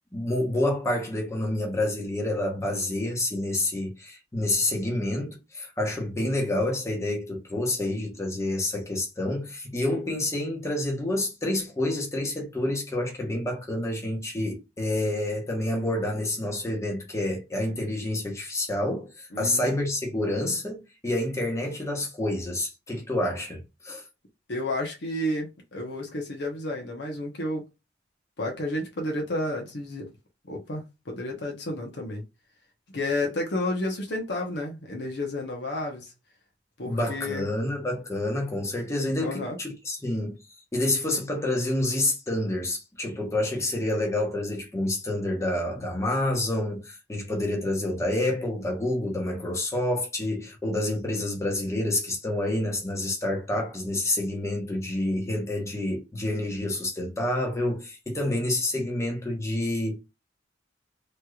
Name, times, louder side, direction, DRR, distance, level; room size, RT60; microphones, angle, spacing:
voice 1, 0.1-24.0 36.8-40.4 40.7-60.0, left 1 dB, 15° left, 1.0 m, -28 dB
voice 2, 19.3-19.7 24.5-27.6 28.4-30.1 30.5-32.2 32.9-36.1 36.8-37.5 39.2-39.6, left 1 dB, 65° left, 0.9 m, -31 dB
3.1 x 3.0 x 2.4 m
head